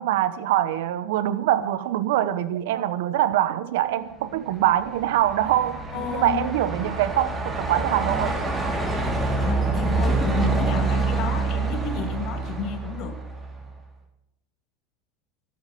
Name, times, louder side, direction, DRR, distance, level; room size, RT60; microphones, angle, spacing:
voice 1, 0.0-8.5, right 12 dB, 75° right, 15 dB, 1.1 m, -24 dB
Truck, 4.3-13.7, right 3 dB, 20° right, 3.5 m, -26 dB
voice 2, 5.9-6.5 6.8-7.0 9.4-13.2, left 7 dB, 55° left, 7 dB, 2.1 m, -31 dB
13.0 x 12.0 x 6.9 m, 0.84 s
supercardioid pair, 105°, 0 cm